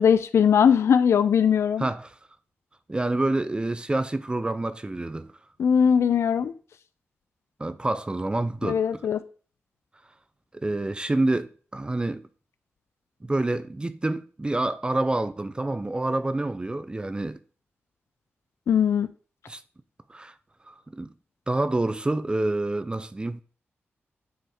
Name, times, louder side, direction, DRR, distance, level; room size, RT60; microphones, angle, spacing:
voice 1, 0.0-1.9 5.6-6.5 8.6-9.2 18.7-19.1, left 7 dB, 75° left, 0.4 m, -20 dB
voice 2, 1.8-2.1 2.9-5.3 7.6-8.8 10.6-12.2 13.2-17.4 19.5-19.6 20.1-20.3 20.7-21.1 21.5-23.4, right 2 dB, 20° right, 0.5 m, -27 dB
9.4 x 4.2 x 4.9 m
cardioid pair, 80°, 5 cm